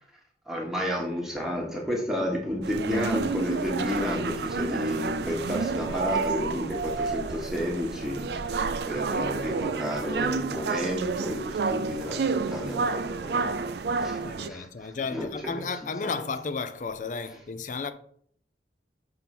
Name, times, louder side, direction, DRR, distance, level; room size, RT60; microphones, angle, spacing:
voice 1, 0.5-13.6 14.0-16.2, left 1 dB, ahead, 1.2 m, -32 dB
sound 1, 2.6-14.5, right 4 dB, 65° right, 0.4 m, -30 dB
voice 2, 14.2-17.9, left 4 dB, 45° left, 0.4 m, -33 dB
5.7 x 3.8 x 5.8 m
head